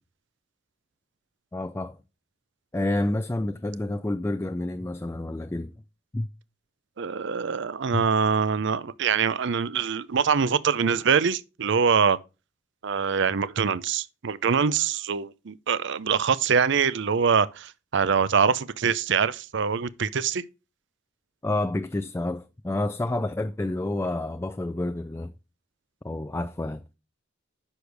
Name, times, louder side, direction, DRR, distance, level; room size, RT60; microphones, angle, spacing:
voice 1, 1.5-1.9 2.7-5.7 6.1-6.3 7.9-8.0 21.4-25.3 26.0-26.8, left 2 dB, 15° left, 0.4 m, -29 dB
voice 2, 7.0-12.2 12.8-20.4, right 6 dB, 60° right, 0.6 m, -24 dB
9.9 x 6.4 x 3.4 m
head